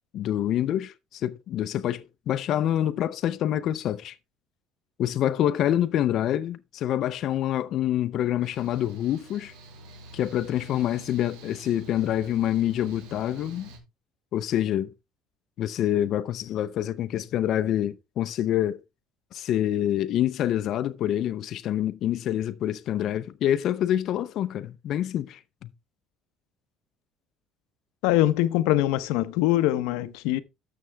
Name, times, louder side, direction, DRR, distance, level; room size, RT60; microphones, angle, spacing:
voice 1, 0.1-4.2 5.0-9.5 10.1-13.7 14.3-14.9 15.6-18.8 19.3-25.7, left 11 dB, 40° left, 0.6 m, -26 dB
Mechanical fan, 8.4-13.8, right 1 dB, 85° right, 4.1 m, -47 dB
voice 2, 28.0-30.4, left 15 dB, 85° left, 0.8 m, -23 dB
13.0 x 6.9 x 3.4 m
cardioid pair, 175°, 0 cm